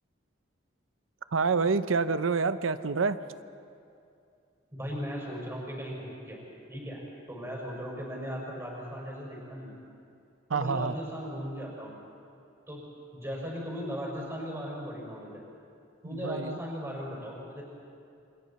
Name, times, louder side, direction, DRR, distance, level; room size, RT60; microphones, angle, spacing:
voice 1, 1.3-3.2 10.5-10.9 16.0-16.6, right 4 dB, 90° right, 12 dB, 0.7 m, -27 dB
voice 2, 4.7-9.8 10.5-12.0 12.7-12.9 13.1-15.4 16.0-17.6, equal, 15° right, -3 dB, 5.5 m, -37 dB
28.0 x 25.5 x 4.3 m, 2.5 s
head